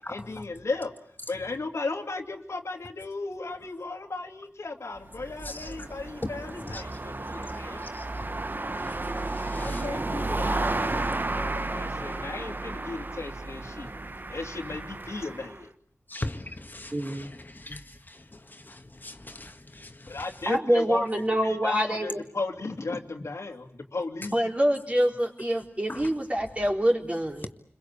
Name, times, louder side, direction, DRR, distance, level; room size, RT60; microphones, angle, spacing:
voice 1, 0.1-0.9 1.3-7.8 9.5-13.9 14.3-15.7 20.1-21.0 21.4-24.4, left 3 dB, 90° left, 2.6 m, -35 dB
sound 1, 5.0-15.6, right 2 dB, 45° right, 1.1 m, -33 dB
voice 2, 5.4-5.9 6.2-6.3 6.7-6.8 7.9-8.0 8.8-9.8 16.1-20.2 25.9-26.1, left 2 dB, 40° left, 1.8 m, -40 dB
voice 3, 16.9-17.3 20.5-22.2 24.3-27.5, equal, 30° right, 4.1 m, -26 dB
29.0 x 22.5 x 8.5 m
wide cardioid pair, 50°, 5 cm